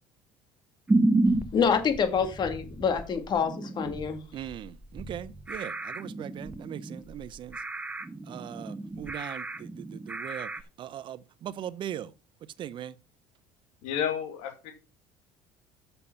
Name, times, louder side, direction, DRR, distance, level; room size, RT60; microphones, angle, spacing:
sound 1, 0.9-10.6, right 2 dB, 15° right, 0.8 m, -31 dB
voice 1, 1.5-4.5, left 6 dB, 45° left, 2.3 m, -27 dB
voice 2, 4.3-7.6 8.3-10.5 10.8-12.1 12.6-12.9, right 11 dB, 50° right, 0.6 m, -39 dB
voice 3, 13.8-14.7, left 9 dB, 80° left, 2.4 m, -31 dB
7.0 x 6.8 x 5.7 m
supercardioid pair, 95°, 11 cm